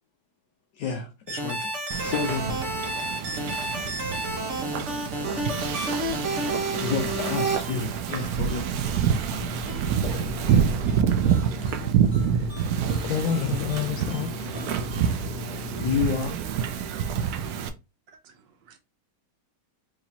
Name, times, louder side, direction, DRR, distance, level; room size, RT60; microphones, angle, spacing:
voice 1, 0.7-1.7 2.0-2.6 6.8-8.8 15.8-16.4, left 5 dB, 65° left, 1.2 m, -29 dB
sound 1, 1.3-7.6, right 1 dB, 45° right, 1.0 m, -30 dB
Wind / Ocean, 1.9-17.7, right 8 dB, 90° right, 0.8 m, -27 dB
sound 2, 5.6-15.2, right 1 dB, 15° right, 0.7 m, -47 dB
voice 2, 9.3-15.9, left 9 dB, 90° left, 1.5 m, -33 dB
voice 3, 18.1-18.8, right 7 dB, 70° right, 1.3 m, -51 dB
4.9 x 2.9 x 2.8 m
omnidirectional pair, 2.2 m